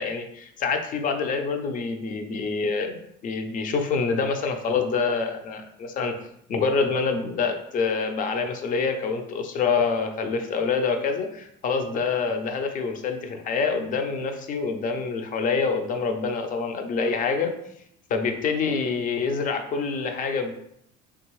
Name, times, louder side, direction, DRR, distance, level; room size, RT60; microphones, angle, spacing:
voice 1, 0.0-3.0 3.2-6.2 6.5-17.5 18.1-20.5, left 5 dB, 40° left, 6 dB, 0.6 m, -26 dB
3.5 x 2.9 x 3.1 m, 0.73 s
supercardioid pair, 100°, 21 cm